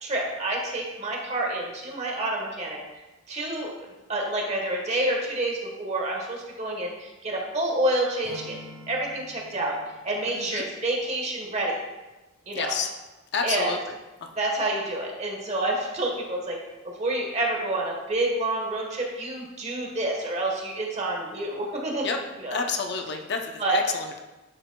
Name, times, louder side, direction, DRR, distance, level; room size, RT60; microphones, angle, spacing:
voice 1, 0.0-2.8 3.3-3.7 4.1-8.5 8.9-9.7 10.0-11.8 12.5-12.7 13.4-13.7 14.4-16.6 17.0-22.1 22.4-22.6 23.6-23.8, right 1 dB, 35° right, 0 dB, 1.2 m, -28 dB
Acoustic guitar / Strum, 8.2-11.3, left 1 dB, 75° right, 1.5 m, -48 dB
voice 2, 10.3-10.7 12.5-12.9 13.3-13.8 14.2-14.3 22.0-22.2 22.5-24.2, left 5 dB, 55° left, 4 dB, 0.6 m, -29 dB
10.5 x 5.0 x 2.2 m, 1.1 s
head